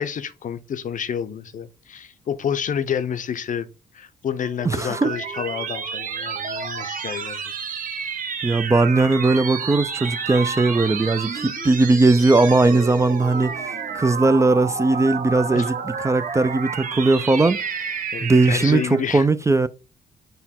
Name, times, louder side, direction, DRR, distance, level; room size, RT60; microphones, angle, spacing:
voice 1, 0.0-3.7 3.9-7.4 15.5-15.7 18.1-19.3, left 8 dB, 50° left, 0.6 m, -29 dB
sound 1, 4.4-19.1, right 6 dB, 55° right, 0.9 m, -30 dB
voice 2, 4.6-5.1 8.4-17.6 18.2-19.7, right 3 dB, 15° right, 0.4 m, -19 dB
5.3 x 2.1 x 4.2 m
hypercardioid pair, 45°, 17 cm